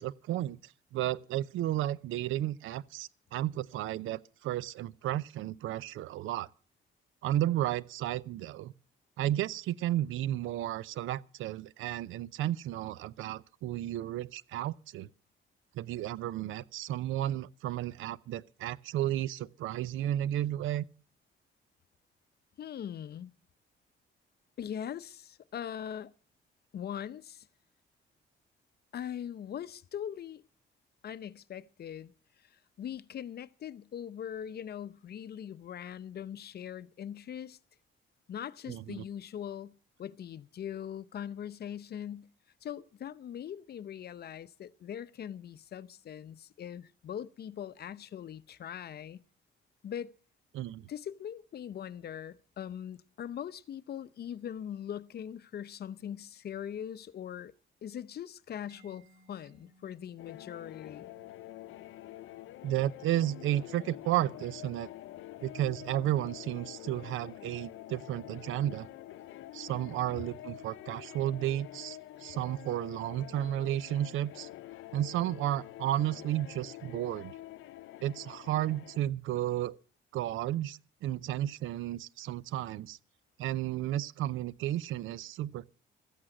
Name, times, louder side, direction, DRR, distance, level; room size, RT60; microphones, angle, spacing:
voice 1, 0.0-6.5 7.2-8.7 9.2-15.1 15.7-20.8 38.7-39.0 50.5-50.9 62.6-64.9 65.4-68.9 69.5-74.5 74.9-77.3 78.0-79.8 80.1-83.0 83.4-85.7, right 13 dB, 85° right, 0.6 m, -33 dB
voice 2, 22.6-23.3 24.6-26.1 26.7-27.5 28.9-30.4 31.0-32.1 32.5-37.6 38.3-42.3 42.6-49.2 49.8-50.1 50.9-57.5 57.8-61.1, left 9 dB, 55° left, 0.7 m, -41 dB
Mallet percussion, 58.7-66.2, right 2 dB, 70° right, 4.1 m, -68 dB
sound 1, 60.2-79.0, left 14 dB, 90° left, 0.7 m, -47 dB
14.0 x 8.7 x 7.8 m
cardioid pair, 90°, 20 cm